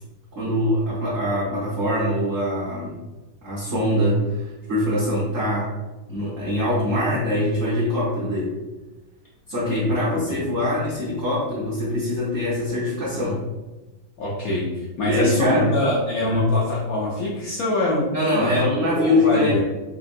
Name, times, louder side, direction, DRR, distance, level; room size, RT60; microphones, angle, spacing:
voice 1, 0.3-3.0 3.4-5.7 6.1-8.5 9.5-13.4 15.0-15.7 16.2-16.5 18.1-19.6, left 1 dB, 55° right, -8 dB, 0.9 m, -23 dB
voice 2, 9.8-10.4 14.2-18.1 18.3-18.5 18.8-19.6, left 1 dB, 70° left, -6 dB, 0.8 m, -24 dB
3.5 x 2.9 x 2.5 m, 1.1 s
omnidirectional pair, 2.2 m